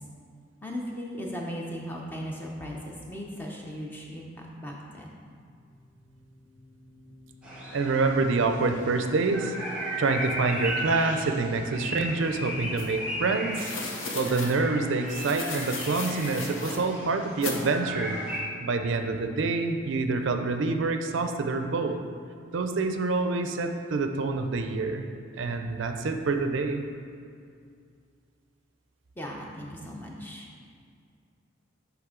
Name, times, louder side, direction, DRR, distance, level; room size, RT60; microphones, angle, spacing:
voice 1, 0.6-5.2 29.2-30.5, equal, 10° left, -2 dB, 0.6 m, -37 dB
sound 1, 4.8-17.0, left 1 dB, 45° left, 1.6 m, -52 dB
sound 2, 7.4-18.4, right 1 dB, 5° right, 0.9 m, -36 dB
voice 2, 7.7-9.5 10.0-13.7 14.1-18.2 18.6-22.0 22.5-25.1 25.4-26.8, right 3 dB, 65° right, 6 dB, 0.4 m, -27 dB
sound 3, 12.8-12.9 13.5-14.5 15.1-16.8 17.4-17.6, left 3 dB, 75° left, 0.8 m, -35 dB
9.2 x 3.5 x 3.7 m, 2.3 s
head